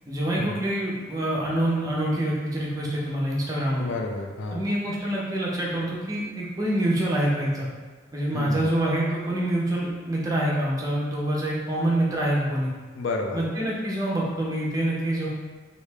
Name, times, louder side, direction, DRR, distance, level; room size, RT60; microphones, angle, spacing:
voice 1, 0.1-3.9 4.5-7.7 8.1-12.7 13.3-15.3, right 1 dB, 20° right, -4 dB, 0.6 m, -26 dB
voice 2, 3.8-4.7 8.3-8.8 12.9-13.5, left 3 dB, 75° left, 2 dB, 0.4 m, -31 dB
3.2 x 2.7 x 3.3 m, 1.4 s
head